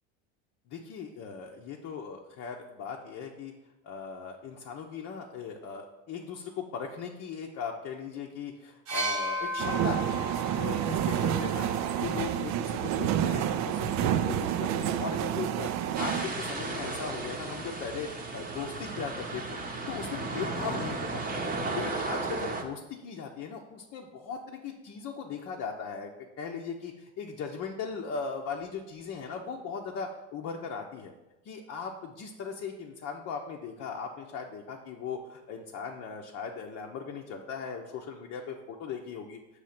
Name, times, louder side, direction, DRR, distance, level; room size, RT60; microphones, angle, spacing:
voice 1, 0.7-3.5 3.8-10.1 10.6-11.7 11.9-19.6 19.9-21.3 21.7-31.1 31.4-39.4, left 6 dB, 40° left, 0 dB, 0.8 m, -38 dB
sound 1, 8.9-12.7 13.7-13.9, equal, 90° right, 1.2 m, -36 dB
sound 2, 9.6-16.2, right 10 dB, 50° right, 0.5 m, -29 dB
sound 3, 15.9-22.6, right 3 dB, 25° right, 0.9 m, -34 dB
6.3 x 3.2 x 5.8 m, 1.0 s
hypercardioid pair, 95°, 37 cm